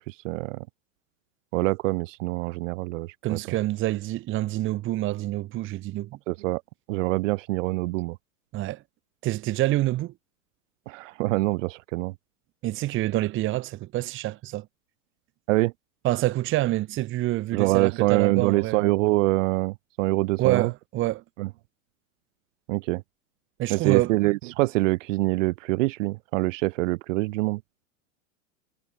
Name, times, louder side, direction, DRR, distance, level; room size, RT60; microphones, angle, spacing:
voice 1, 0.1-0.7 1.5-3.4 6.3-6.6 6.9-8.2 10.9-12.1 15.5-15.7 17.5-20.7 21.4-21.5 22.7-23.0 23.7-27.6, right 21 dB, 65° right, 0.6 m, -25 dB
voice 2, 3.2-6.1 8.5-8.8 9.2-10.1 12.6-14.7 16.0-18.9 20.4-21.2 23.6-24.1, right 16 dB, 30° right, 0.7 m, -27 dB
hypercardioid pair, 115°, 40 cm